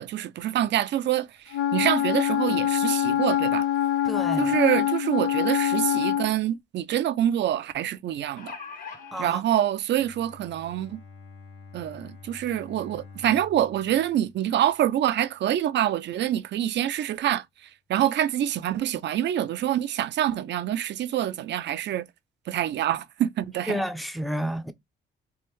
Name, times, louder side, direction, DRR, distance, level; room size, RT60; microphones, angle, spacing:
voice 1, 0.0-3.7 4.4-8.6 9.2-11.0 11.7-17.4 17.9-22.1 22.5-23.8, right 11 dB, 60° right, 0.5 m, -26 dB
Wind instrument woodwind instrument, 1.5-6.3, left 11 dB, 85° left, 0.6 m, -24 dB
voice 2, 4.0-4.6 9.1-9.4 23.7-24.7, equal, ahead, 0.5 m, -30 dB
sound 1, 5.9-6.0 6.4-6.5 8.1-9.3 10.2-10.3 10.7-10.8, left 6 dB, 45° left, 1.2 m, -40 dB
Bowed string instrument, 9.9-15.2, left 4 dB, 70° left, 1.1 m, -48 dB
3.4 x 2.5 x 3.1 m
cardioid pair, 90°, 20 cm